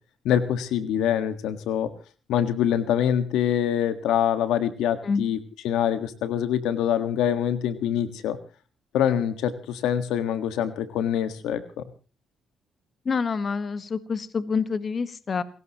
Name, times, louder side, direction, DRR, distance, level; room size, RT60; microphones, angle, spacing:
voice 1, 0.2-1.9 2.3-5.4 5.6-8.4 8.9-11.8, left 9 dB, 90° left, 10 dB, 1.6 m, -25 dB
voice 2, 13.0-15.4, left 5 dB, 40° left, 12 dB, 1.3 m, -27 dB
29.0 x 16.0 x 3.0 m, 0.36 s
cardioid pair, 90°, 0 cm